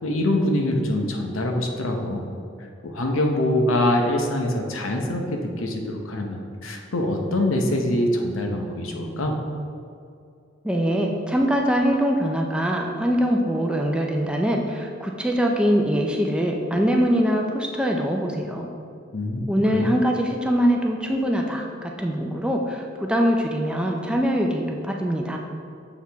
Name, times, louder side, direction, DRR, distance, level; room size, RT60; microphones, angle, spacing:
voice 1, 0.0-2.2 2.8-9.4 19.1-19.9, left 1 dB, 85° left, 2 dB, 0.8 m, -24 dB
voice 2, 10.6-18.7 19.5-25.4, equal, 5° right, 1 dB, 0.4 m, -23 dB
7.0 x 4.7 x 3.4 m, 2.4 s
head